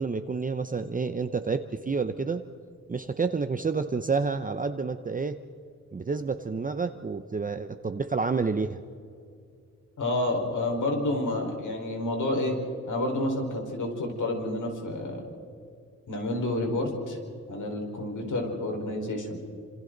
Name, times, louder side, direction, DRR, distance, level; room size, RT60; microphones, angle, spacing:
voice 1, 0.0-2.4 2.9-5.4 5.9-8.8, right 4 dB, 25° right, 8 dB, 0.6 m, -29 dB
voice 2, 10.0-12.5 12.9-15.2 16.1-17.2 17.5-19.4, left 1 dB, 70° left, 2 dB, 4.7 m, -29 dB
29.5 x 27.0 x 4.0 m, 2.4 s
wide cardioid pair, 165°, 32 cm